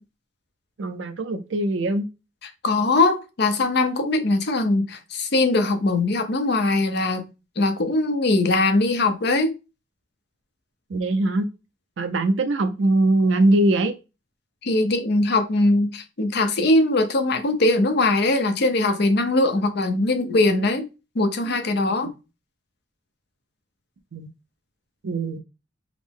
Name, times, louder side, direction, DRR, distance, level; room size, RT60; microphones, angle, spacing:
voice 1, 0.8-2.1 10.9-11.5 12.0-13.9 24.1-24.3 25.0-25.4, right 2 dB, 70° right, 0.5 m, -21 dB
voice 2, 2.4-7.3 7.6-9.5 14.6-20.8 21.1-22.1, left 2 dB, 60° left, 0.7 m, -21 dB
4.8 x 2.0 x 3.6 m
head